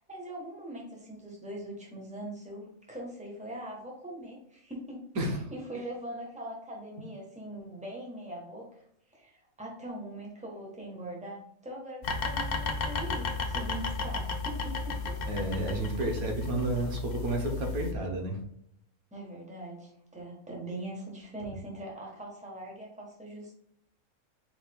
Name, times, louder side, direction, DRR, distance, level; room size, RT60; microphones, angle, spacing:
voice 1, 0.0-5.1 5.5-8.7 9.1-15.2 19.1-23.5, right 1 dB, 5° right, -1 dB, 1.1 m, -42 dB
voice 2, 5.2-5.5 15.2-18.4, right 1 dB, 90° right, 2 dB, 1.4 m, -31 dB
sound 1, 12.0-17.9, left 3 dB, 65° left, 0.4 m, -33 dB
4.7 x 4.0 x 2.3 m, 0.73 s
omnidirectional pair, 1.5 m